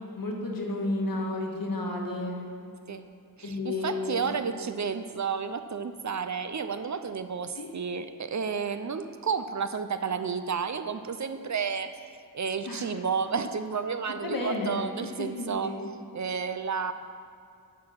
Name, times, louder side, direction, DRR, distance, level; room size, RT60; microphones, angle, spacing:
voice 1, 0.1-2.5 3.4-4.3 7.5-7.7 12.6-12.9 14.2-15.8, left 2 dB, 75° left, -1 dB, 1.6 m, -32 dB
voice 2, 3.4-15.7 16.1-16.9, right 6 dB, 55° right, 10 dB, 0.6 m, -31 dB
10.0 x 6.7 x 5.7 m, 2.3 s
wide cardioid pair, 70°, 35 cm